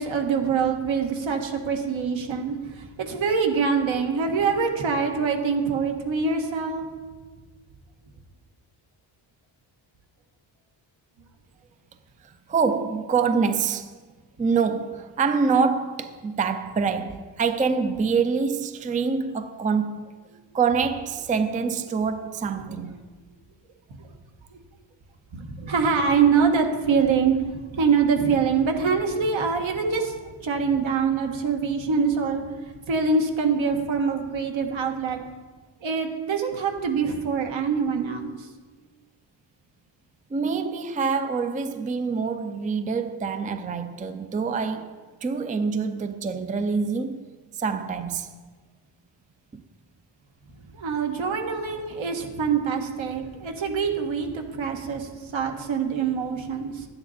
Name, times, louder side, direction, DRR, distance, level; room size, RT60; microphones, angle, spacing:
voice 1, 0.0-6.9 22.6-22.7 24.5-24.6 25.3-32.4 32.9-35.2 35.8-38.5 50.7-56.9, right 5 dB, 70° right, 1.5 m, -24 dB
voice 2, 12.2-13.9 14.4-20.1 20.5-23.0 40.3-47.2 47.5-48.3 49.5-49.6, right 5 dB, 15° right, 0.4 m, -26 dB
11.0 x 9.5 x 4.2 m
cardioid pair, 115°, 48 cm